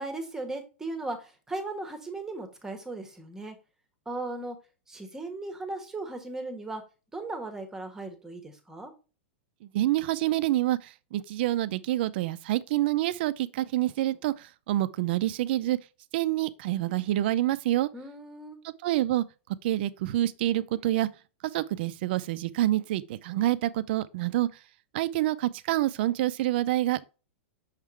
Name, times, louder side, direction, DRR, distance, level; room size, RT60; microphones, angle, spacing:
voice 1, 0.0-3.6 4.0-4.6 4.9-6.8 7.1-8.9 17.9-18.6, right 2 dB, 10° right, 1.4 m, -37 dB
voice 2, 9.6-15.8 16.1-17.9 18.8-19.2 19.6-21.1 21.4-24.5 24.9-27.1, right 15 dB, 60° right, 0.6 m, -27 dB
6.5 x 3.7 x 4.6 m
hypercardioid pair, 135°, 6 cm